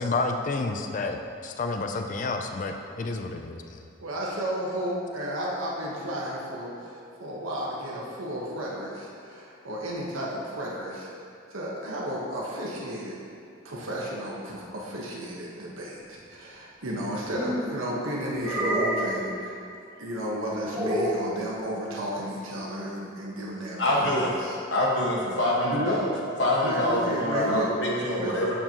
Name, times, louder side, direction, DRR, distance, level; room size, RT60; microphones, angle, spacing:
voice 1, 0.0-3.8, left 3 dB, 35° left, 4 dB, 0.4 m, -30 dB
voice 2, 4.0-11.1 11.5-13.2 13.6-19.6 20.0-24.6 25.6-26.0 26.6-27.7 28.2-28.4, equal, 75° right, -4 dB, 1.1 m, -33 dB
sound 1, 16.9-17.7 18.4-19.2 20.7-21.3, equal, 15° right, 1.5 m, -28 dB
voice 3, 23.8-24.3 24.7-26.1 26.4-28.6, left 1 dB, 55° left, -4 dB, 1.4 m, -25 dB
8.6 x 6.7 x 2.9 m, 2.5 s
head